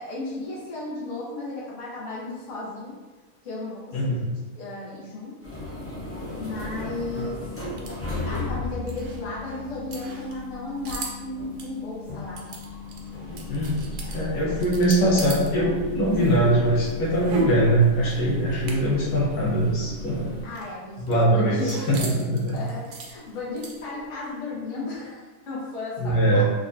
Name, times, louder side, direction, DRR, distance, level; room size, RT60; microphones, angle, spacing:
voice 1, 0.0-3.0 3.4-4.3 4.5-5.5 6.4-7.4 8.3-12.5 20.4-22.1 22.5-26.5, left 2 dB, 55° left, -7 dB, 1.4 m, -34 dB
sound 1, 5.4-20.4, left 2 dB, 15° left, 0.4 m, -36 dB
sound 2, 6.2-15.5 15.8-19.1 19.4-19.5 19.8-24.1, right 4 dB, 60° right, 0.8 m, -41 dB
voice 2, 13.5-13.8 14.1-20.3 21.0-22.6 26.0-26.5, right 1 dB, 85° left, -5 dB, 1.4 m, -22 dB
3.8 x 3.3 x 2.5 m, 1.3 s
omnidirectional pair, 1.6 m